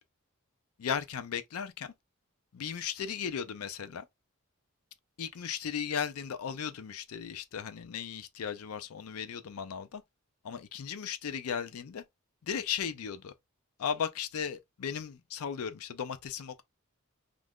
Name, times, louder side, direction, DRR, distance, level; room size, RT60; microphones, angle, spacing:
voice 1, 0.8-1.9 2.5-4.1 5.2-10.0 10.4-12.0 12.4-13.3 13.8-16.6, left 7 dB, 80° left, 0.4 m, -36 dB
2.5 x 2.2 x 3.4 m
head